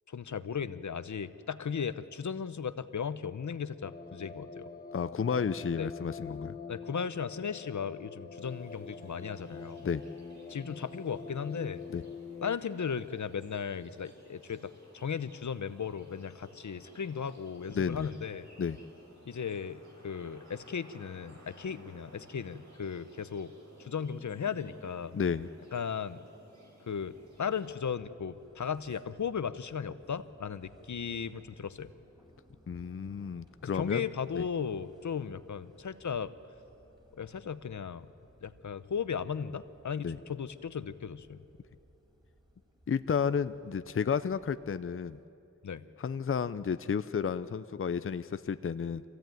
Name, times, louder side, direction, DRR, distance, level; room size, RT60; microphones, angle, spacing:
voice 1, 0.1-4.7 5.8-5.9 6.7-9.8 10.5-11.8 12.4-18.5 19.3-23.5 23.8-25.1 25.7-26.2 26.9-31.9 33.6-36.3 37.1-38.1 38.4-41.4 45.6-45.8, left 7 dB, 75° left, 14 dB, 0.8 m, -36 dB
sound 1, 3.8-12.6, left 4 dB, 30° left, 1.2 m, -45 dB
voice 2, 4.9-6.5 9.8-10.0 11.9-12.0 17.7-18.1 18.6-18.8 25.1-25.5 32.7-34.1 34.3-34.5 40.0-40.2 42.9-45.2 46.0-49.0, left 6 dB, 45° left, 13 dB, 0.5 m, -32 dB
sound 2, 8.3-27.8, right 1 dB, 70° right, 4.7 m, -57 dB
sound 3, 26.9-45.2, right 1 dB, 15° right, 4.0 m, -63 dB
25.0 x 16.0 x 9.1 m, 2.9 s
wide cardioid pair, 70°, 29 cm